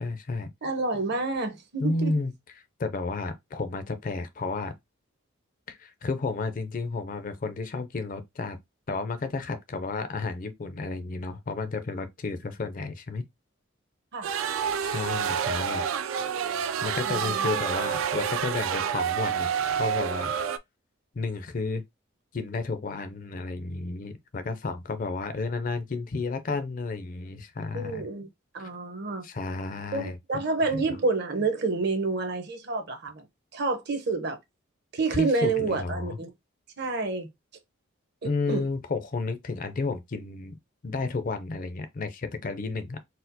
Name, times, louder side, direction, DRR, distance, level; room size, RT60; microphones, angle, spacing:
voice 1, 0.0-0.5 1.8-2.3 2.8-4.7 5.7-8.6 8.9-13.3 14.8-15.8 16.5-19.5 19.8-20.3 21.1-21.8 22.3-28.1 28.6-28.7 29.2-30.2 30.7-30.8 35.1-36.2 38.2-40.5 40.8-43.0, left 3 dB, 40° left, 0.4 m, -32 dB
voice 2, 0.6-2.1 14.1-14.3 17.0-17.6 27.7-28.3 28.5-29.2 29.9-33.2 33.5-34.4 34.9-36.3 36.8-37.3 38.5-38.6, right 3 dB, 55° right, 0.8 m, -28 dB
sound 1, 14.2-20.6, right 7 dB, 70° right, 0.3 m, -28 dB
4.2 x 2.0 x 2.6 m
head